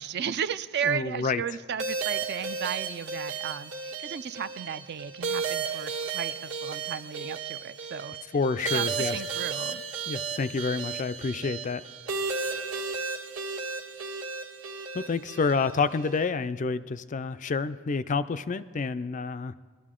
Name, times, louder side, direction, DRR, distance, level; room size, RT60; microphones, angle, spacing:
voice 1, 0.0-8.2 8.6-9.8, right 7 dB, 45° right, 14 dB, 0.4 m, -34 dB
voice 2, 0.9-1.4 8.3-9.2 10.1-11.8 14.9-19.5, left 4 dB, 35° left, 13 dB, 0.3 m, -28 dB
sound 1, 1.8-16.3, right 5 dB, 65° right, 1.6 m, -34 dB
22.0 x 12.5 x 3.7 m, 1.5 s
head